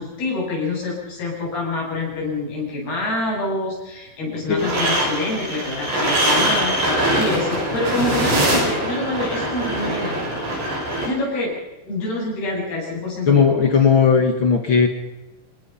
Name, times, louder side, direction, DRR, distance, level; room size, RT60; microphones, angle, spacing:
voice 1, 0.0-10.3 11.0-11.6 11.9-13.6, left 2 dB, 85° left, -3 dB, 9.4 m, -26 dB
sound 1, 4.6-11.0, right 1 dB, 70° right, 9.1 m, -22 dB
voice 2, 13.3-14.9, left 6 dB, 50° left, 5 dB, 1.6 m, -16 dB
26.5 x 20.0 x 5.7 m, 1.0 s
omnidirectional pair, 4.4 m